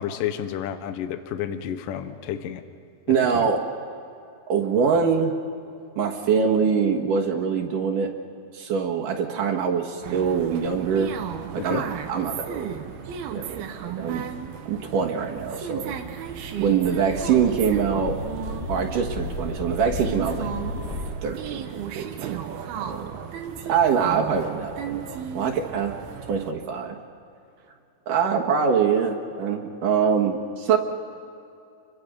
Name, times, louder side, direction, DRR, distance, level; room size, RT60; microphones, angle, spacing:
voice 1, 0.0-2.6 3.1-3.5 11.6-11.8, left 10 dB, 70° left, 9 dB, 2.5 m, -31 dB
voice 2, 3.1-3.6 4.5-5.3 6.0-8.1 8.5-11.1 11.5-12.8 13.3-14.3 14.7-16.0 16.6-18.2 18.7-20.5 21.2-22.4 22.8-23.2 23.7-26.0 26.3-27.0 28.1-30.8, right 6 dB, 65° right, 1 dB, 3.0 m, -24 dB
sound 1, 10.0-26.5, right 8 dB, 80° right, 3.1 m, -35 dB
sound 2, 16.1-21.1, left 3 dB, 90° left, 5.3 m, -34 dB
29.5 x 23.5 x 5.3 m, 2.6 s
omnidirectional pair, 4.3 m